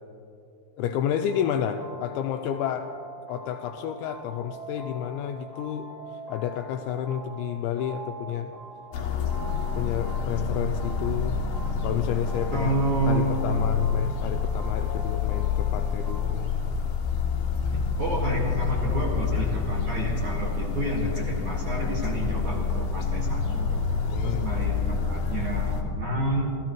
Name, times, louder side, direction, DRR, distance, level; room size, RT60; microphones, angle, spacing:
voice 1, 0.8-2.9 3.3-8.5 9.8-11.4 11.8-12.7 13.1-16.5 24.1-24.5, left 9 dB, 85° left, 6 dB, 2.6 m, -30 dB
sound 1, 1.1-16.2, equal, 40° left, 1.0 m, -43 dB
sound 2, 8.9-25.8, left 6 dB, 60° left, 3.0 m, -28 dB
voice 2, 12.5-13.7 17.6-23.8 24.2-26.5, right 2 dB, 55° right, -3 dB, 2.3 m, -29 dB
30.0 x 14.5 x 3.0 m, 2.8 s
omnidirectional pair, 5.7 m